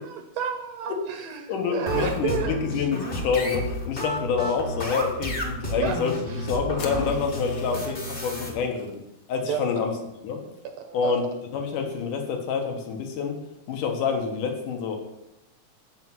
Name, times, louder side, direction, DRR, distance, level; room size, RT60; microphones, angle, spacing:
voice 1, 0.0-2.6 5.8-6.0 6.3-6.5 7.2-7.3 7.6-8.4 9.5-9.8 10.6-11.2, right 7 dB, 75° right, 6 dB, 1.6 m, -32 dB
voice 2, 1.5-6.1 6.4-8.9 9.3-9.9 10.2-10.4 10.9-11.2 11.5-13.4 13.7-15.0, left 5 dB, 90° left, 3 dB, 3.0 m, -27 dB
sound 1, 1.9-8.5, left 1 dB, 30° left, 1.0 m, -31 dB
sound 2, 6.8-9.0, left 4 dB, 65° left, 2.2 m, -43 dB
7.8 x 6.7 x 6.0 m, 0.89 s
omnidirectional pair, 3.5 m